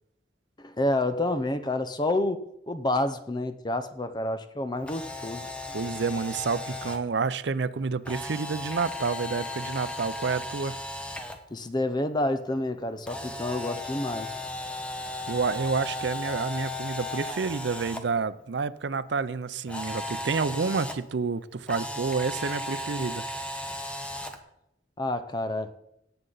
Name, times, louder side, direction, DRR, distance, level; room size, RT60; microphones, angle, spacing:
voice 1, 0.6-5.8 11.5-14.3 25.0-25.7, left 1 dB, 25° left, 0.7 m, -29 dB
Camera, 4.8-7.0 8.1-11.4 13.1-18.0 19.7-20.9 21.7-24.4, left 1 dB, 5° left, 1.0 m, -36 dB
voice 2, 5.7-10.8 15.3-23.2, right 4 dB, 75° right, 0.5 m, -29 dB
17.5 x 7.8 x 4.0 m
head